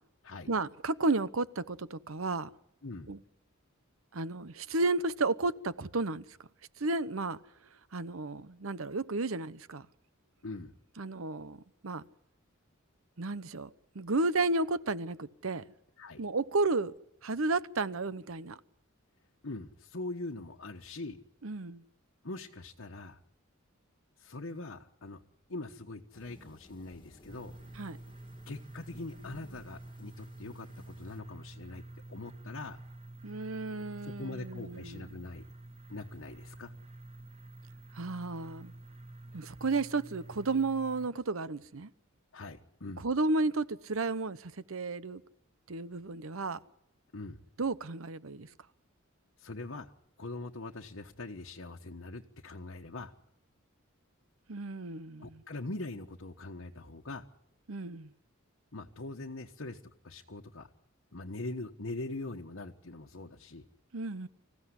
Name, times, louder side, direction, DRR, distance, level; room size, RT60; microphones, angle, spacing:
voice 1, 0.5-2.5 3.1-3.2 4.1-6.2 6.8-7.4 7.9-9.9 11.0-12.0 13.2-13.7 13.9-15.6 16.2-16.9 17.2-18.6 21.4-21.8 27.8-28.0 33.2-35.3 37.9-38.7 39.3-41.9 43.0-45.2 45.7-46.6 47.6-48.5 54.5-55.4 57.7-58.1 63.9-64.3, right 3 dB, 70° right, 0.9 m, -32 dB
voice 2, 19.4-21.2 22.2-23.2 24.2-25.2 25.5-27.5 28.5-31.8 32.1-32.8 34.0-35.4 35.9-36.7 42.3-43.0 47.1-47.4 49.4-49.9 50.2-53.1 55.2-57.3 58.7-60.7 61.1-63.6, left 2 dB, 65° left, 1.3 m, -42 dB
sound 1, 26.1-31.2, left 1 dB, 25° left, 2.0 m, -58 dB
sound 2, 27.3-41.1, right 1 dB, 30° right, 0.9 m, -49 dB
25.5 x 15.5 x 9.9 m
head